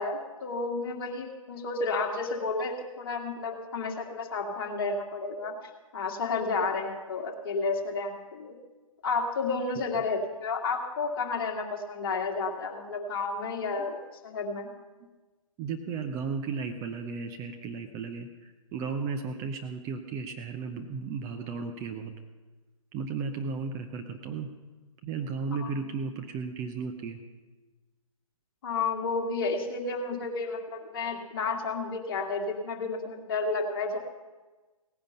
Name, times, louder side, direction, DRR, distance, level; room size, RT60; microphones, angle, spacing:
voice 1, 0.0-5.5 5.9-8.6 9.0-14.0 14.2-14.7 25.5-25.9 28.6-34.0, left 4 dB, 40° left, 1 dB, 2.1 m, -31 dB
voice 2, 15.6-22.1 22.9-24.5 25.0-27.2, right 5 dB, 20° right, 5 dB, 0.6 m, -34 dB
18.0 x 10.0 x 5.5 m, 1.2 s
figure-of-eight pair, 130°, 18 cm